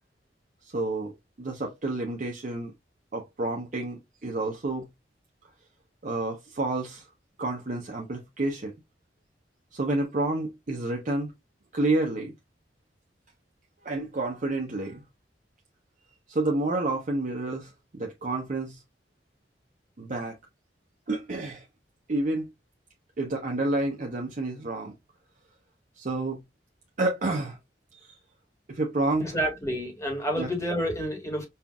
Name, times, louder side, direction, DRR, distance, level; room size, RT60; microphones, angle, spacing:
voice 1, 0.7-2.7 3.1-4.9 6.0-7.0 7.4-8.7 9.7-11.3 11.7-12.3 13.8-15.0 16.3-18.8 20.0-20.4 21.1-21.6 22.1-22.5 23.2-24.9 26.0-26.4 27.0-27.6 27.9-28.1 28.7-29.4 30.4-30.5, right 2 dB, 45° right, 0.7 m, -29 dB
voice 2, 29.2-31.4, equal, 15° left, 1.3 m, -29 dB
5.5 x 2.4 x 2.2 m
head